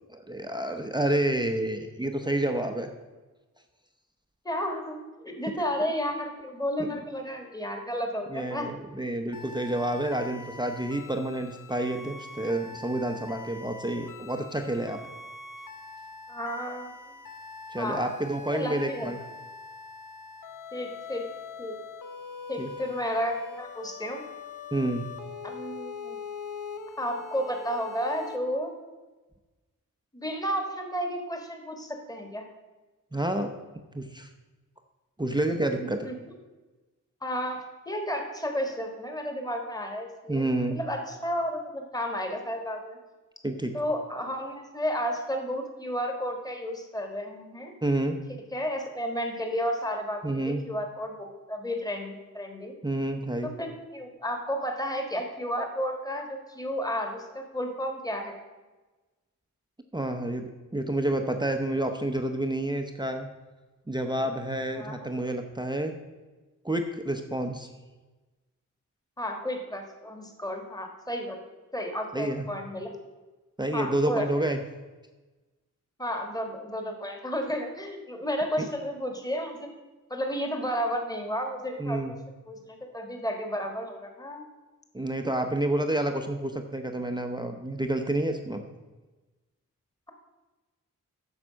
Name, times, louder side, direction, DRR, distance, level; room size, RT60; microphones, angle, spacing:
voice 1, 0.1-2.9 6.8-6.9 8.3-15.0 17.7-19.2 22.6-22.7 24.7-25.0 33.1-33.5 33.9-34.3 35.2-36.1 40.3-40.8 43.4-43.8 47.8-48.2 50.2-50.6 52.8-53.5 59.9-63.3 63.9-65.9 66.6-67.7 72.1-72.5 73.6-74.6 78.6-78.7 81.8-82.1 84.9-88.6, right 1 dB, 15° right, 5 dB, 0.7 m, -29 dB
voice 2, 4.5-8.7 16.3-17.0 17.8-18.1 18.5-19.1 20.7-21.3 21.6-21.8 22.5-24.2 25.4-26.2 27.0-28.7 30.1-32.4 35.6-36.1 37.2-40.4 40.7-43.0 43.7-47.7 48.5-52.7 53.4-58.4 64.8-65.1 69.2-71.4 71.7-72.9 73.7-74.5 76.0-79.7 80.1-82.0 82.5-84.4, equal, 10° left, 3 dB, 1.6 m, -32 dB
sound 1, 9.3-28.4, left 4 dB, 80° left, 1.1 m, -43 dB
9.8 x 6.7 x 6.2 m, 1.2 s
wide cardioid pair, 120°, 31 cm